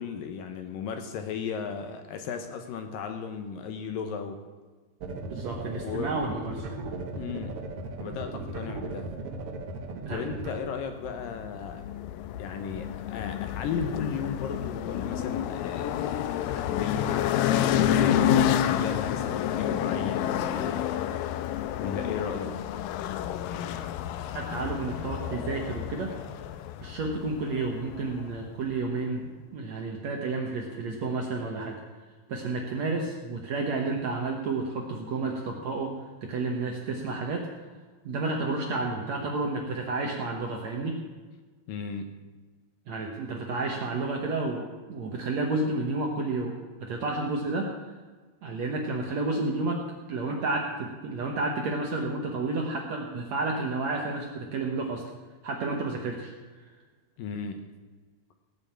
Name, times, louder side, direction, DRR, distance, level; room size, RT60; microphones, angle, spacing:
voice 1, 0.0-4.5 5.8-6.1 7.2-7.6 8.0-9.1 10.1-11.9 12.4-21.1 21.4-22.6 41.7-42.2 57.2-57.7, left 6 dB, 70° left, 6 dB, 2.3 m, -35 dB
sound 1, 5.0-10.6, right 2 dB, 85° right, 1.2 m, -37 dB
voice 2, 5.3-6.7 10.1-10.3 23.5-26.1 26.8-31.8 32.3-37.5 38.0-41.0 42.9-47.7 48.4-55.0 55.4-56.3, right 3 dB, 65° right, 1 dB, 1.8 m, -31 dB
sound 2, 11.0-28.5, left 10 dB, 85° left, 2.0 m, -29 dB
17.5 x 6.4 x 8.7 m, 1.4 s
omnidirectional pair, 4.6 m